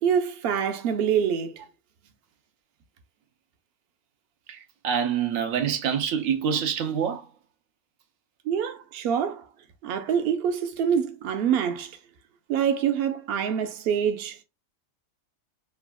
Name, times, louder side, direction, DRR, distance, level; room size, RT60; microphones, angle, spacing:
voice 1, 0.0-1.6 8.5-9.4 9.8-11.9 12.5-14.4, right 8 dB, 65° right, 0.6 m, -25 dB
voice 2, 4.5-7.3, right 8 dB, 80° right, 1.0 m, -26 dB
3.4 x 2.2 x 2.3 m
omnidirectional pair, 1.4 m